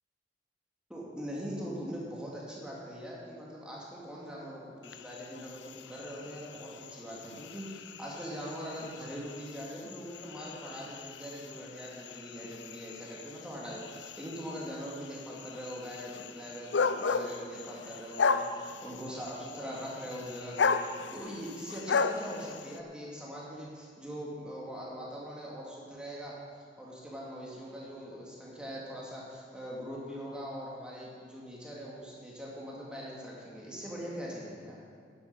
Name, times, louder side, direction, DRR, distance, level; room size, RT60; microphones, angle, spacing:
voice 1, 0.9-26.4 26.8-34.8, equal, 5° right, -5 dB, 2.4 m, -42 dB
sound 1, 4.8-22.8, left 5 dB, 85° left, 0.5 m, -36 dB
11.5 x 9.8 x 5.5 m, 2.3 s
head